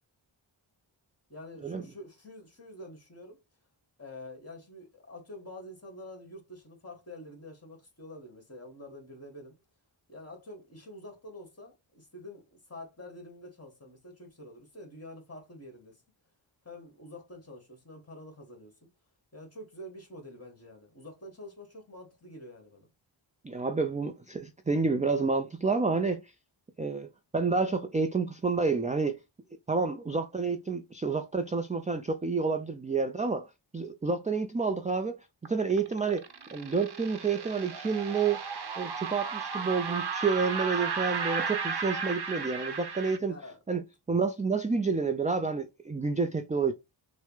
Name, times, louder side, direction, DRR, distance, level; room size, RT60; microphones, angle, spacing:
voice 1, 1.3-3.4 4.0-9.6 10.1-16.0 16.6-18.7 19.3-22.9 43.3-43.6, left 1 dB, 30° left, 1.8 m, -47 dB
voice 2, 23.4-26.2 26.8-29.2 29.7-33.5 33.7-35.2 35.5-36.2 36.5-38.4 38.8-43.3 43.7-43.8 44.1-46.7, right 4 dB, 15° right, 0.4 m, -29 dB
sound 1, 35.4-43.2, right 5 dB, 55° right, 0.8 m, -34 dB
6.3 x 2.1 x 3.2 m
wide cardioid pair, 90°, 49 cm